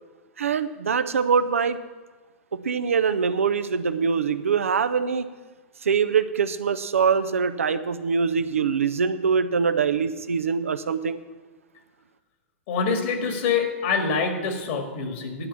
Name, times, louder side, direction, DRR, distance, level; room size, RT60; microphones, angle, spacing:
voice 1, 0.4-1.8 2.5-5.3 5.8-11.2, right 6 dB, 80° right, 12 dB, 0.6 m, -23 dB
voice 2, 12.7-15.5, left 5 dB, 60° left, 5 dB, 1.9 m, -25 dB
11.0 x 5.7 x 8.4 m, 1.3 s
hypercardioid pair, 105°, 7 cm